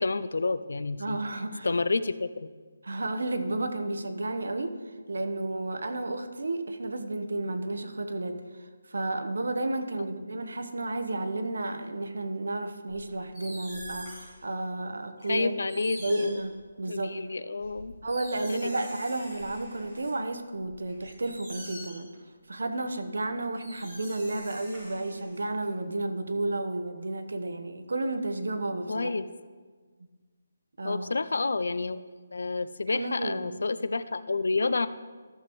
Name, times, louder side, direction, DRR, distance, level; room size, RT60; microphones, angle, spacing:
voice 1, 0.0-1.2 1.6-2.5 10.0-10.1 15.3-16.4 16.9-17.9 18.5-18.8 28.9-29.3 30.8-32.0 32.3-34.9, left 3 dB, 65° left, 14 dB, 0.4 m, -29 dB
voice 2, 1.0-1.7 2.8-4.8 5.1-15.6 16.0-16.5 16.8-17.2 18.0-22.1 22.5-29.1 30.8-31.1 32.9-33.5, right 2 dB, 80° right, 7 dB, 0.9 m, -32 dB
sound 1, 12.9-14.4 15.2-15.3 15.7-17.0 17.6-20.1 20.5-22.2 23.2-23.3 23.6-25.7, equal, 10° right, 3.1 m, -45 dB
14.0 x 6.9 x 3.1 m, 1.5 s
hypercardioid pair, 180°, 0 cm